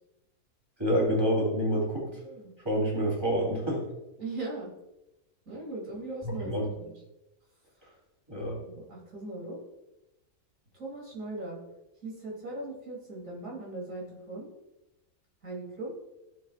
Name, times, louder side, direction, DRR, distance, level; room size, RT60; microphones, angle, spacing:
voice 1, 0.8-2.0 2.6-3.8 6.2-6.7 8.3-8.6, equal, 15° right, -3 dB, 3.2 m, -27 dB
voice 2, 2.2-2.5 4.2-4.7 5.5-6.9 8.6-9.6 10.7-11.6 12.0-14.5 15.4-15.9, right 2 dB, 60° right, -3 dB, 3.1 m, -39 dB
14.0 x 7.4 x 2.4 m, 0.95 s
omnidirectional pair, 1.5 m